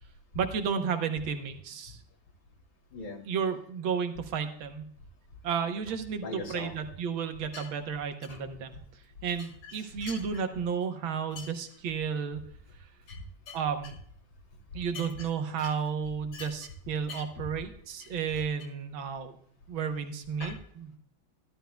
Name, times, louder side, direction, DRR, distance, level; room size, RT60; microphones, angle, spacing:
voice 1, 0.4-2.0 3.3-4.9 5.4-12.4 13.5-14.0 14.7-19.4 19.7-20.9, right 6 dB, 90° right, 7 dB, 1.8 m, -32 dB
voice 2, 2.9-3.3 6.2-6.7 7.5-7.7 8.2-8.4 9.6-10.4 11.4-11.5 13.1-13.6 14.9-15.3 15.6-15.7 16.3-16.7 17.1-17.2 20.4-20.6, left 3 dB, 85° left, 3 dB, 2.6 m, -42 dB
13.5 x 12.0 x 2.2 m, 0.63 s
omnidirectional pair, 2.1 m